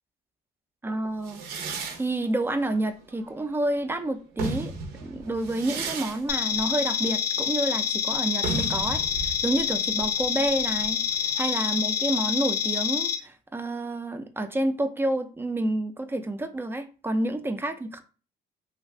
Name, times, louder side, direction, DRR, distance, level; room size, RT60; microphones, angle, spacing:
voice 1, 0.8-1.4 2.0-4.7 5.0-11.0 11.4-18.0, right 1 dB, 15° right, 0.4 m, -29 dB
sound 1, 1.2-3.7 4.2-11.7, right 4 dB, 70° right, 0.6 m, -36 dB
sound 2, 6.3-13.1, left 8 dB, 75° left, 0.6 m, -27 dB
2.5 x 2.4 x 3.3 m
cardioid pair, 110°, 17 cm